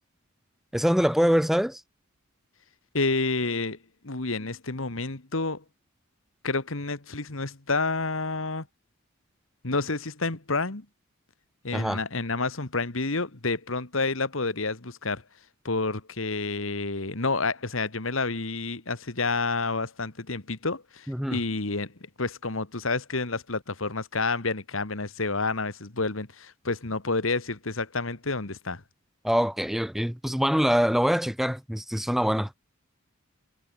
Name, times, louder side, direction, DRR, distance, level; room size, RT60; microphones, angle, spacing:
voice 1, 0.7-1.8 11.7-12.0 21.1-21.4 29.2-32.5, equal, ahead, 0.6 m, -24 dB
voice 2, 2.9-3.8 4.0-5.6 6.4-8.7 9.6-10.9 11.6-15.2 15.6-21.9 22.2-28.8, left 3 dB, 70° left, 2.0 m, -29 dB
head